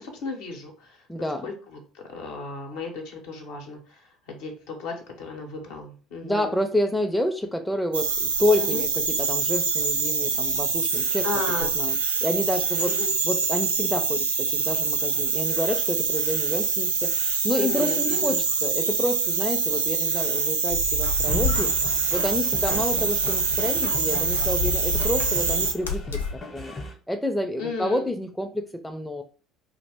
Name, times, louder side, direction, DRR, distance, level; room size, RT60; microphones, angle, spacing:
voice 1, 0.0-1.0 1.4-6.6 8.6-8.8 11.2-11.8 12.8-13.1 17.5-18.4 27.6-28.1, left 3 dB, 65° left, 2 dB, 0.7 m, -34 dB
voice 2, 1.1-1.5 6.2-11.2 11.6-12.9 13.2-21.7 22.1-26.2 26.5-26.8 27.1-29.2, left 1 dB, 5° left, 5 dB, 0.4 m, -29 dB
sound 1, 7.9-25.7, right 4 dB, 85° right, 0.3 m, -25 dB
sound 2, 20.7-26.3, left 4 dB, 80° left, 0.3 m, -32 dB
sound 3, 21.3-26.9, left 1 dB, 30° left, 0.8 m, -38 dB
2.4 x 2.0 x 3.4 m, 0.37 s
figure-of-eight pair, 60°, 0 cm